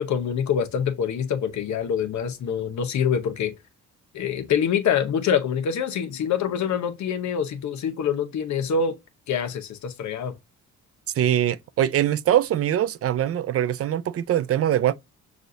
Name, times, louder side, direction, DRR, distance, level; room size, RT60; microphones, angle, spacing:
voice 1, 0.0-3.5 4.1-9.0 9.3-10.3, left 7 dB, 65° left, 1.0 m, -25 dB
voice 2, 11.2-14.9, right 11 dB, 50° right, 0.4 m, -22 dB
6.2 x 2.5 x 2.7 m
cardioid pair, 100°, 31 cm